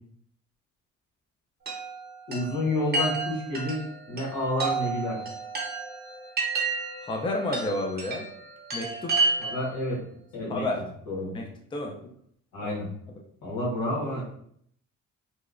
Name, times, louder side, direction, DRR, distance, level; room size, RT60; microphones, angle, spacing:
Chime, 1.7-9.8, right 3 dB, 35° right, 0.8 m, -31 dB
voice 1, 2.3-5.2 9.4-10.0 10.3-10.7 11.1-11.4 12.5-12.9 13.4-14.2, left 1 dB, 85° left, -5 dB, 1.2 m, -29 dB
voice 2, 7.0-8.3 8.7-9.2 10.5-10.8 11.3-12.0 12.6-12.8, left 2 dB, 15° left, 1 dB, 0.4 m, -30 dB
2.8 x 2.1 x 2.4 m, 0.67 s
cardioid pair, 90°, 30 cm